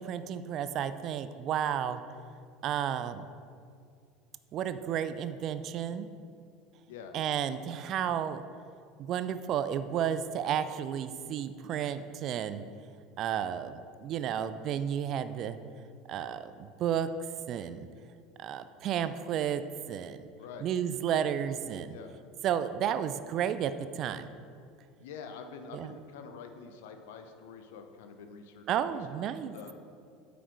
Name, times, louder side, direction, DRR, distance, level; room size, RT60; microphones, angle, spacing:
voice 1, 0.0-2.0 2.6-3.2 4.5-6.1 7.1-8.4 9.0-12.6 13.2-15.6 16.1-17.1 17.5-17.9 18.4-19.6 19.9-20.2 20.6-21.9 22.4-24.3 25.7-25.9 28.7-29.6, right 9 dB, 45° right, 12 dB, 0.4 m, -32 dB
voice 2, 25.0-29.7, left 6 dB, 60° left, 6 dB, 0.6 m, -47 dB
8.6 x 5.1 x 4.6 m, 2.3 s
figure-of-eight pair, 70°, 0 cm